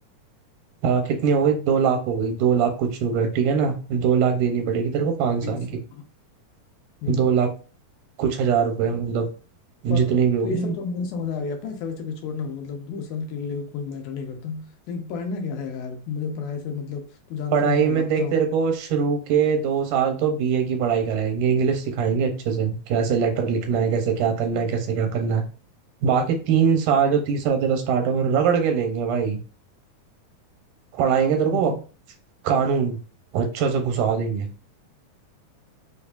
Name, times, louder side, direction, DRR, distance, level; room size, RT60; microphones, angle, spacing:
voice 1, 0.8-5.8 7.1-7.5 8.2-9.3 9.8-10.7 17.5-25.4 26.0-29.4 30.9-31.7 32.4-33.0 33.3-34.5, right 6 dB, 85° right, 4 dB, 2.1 m, -22 dB
voice 2, 10.4-17.0 17.3-18.3 31.5-31.8, left 5 dB, 80° left, 4 dB, 2.2 m, -31 dB
5.1 x 2.4 x 2.3 m, 0.37 s
omnidirectional pair, 3.6 m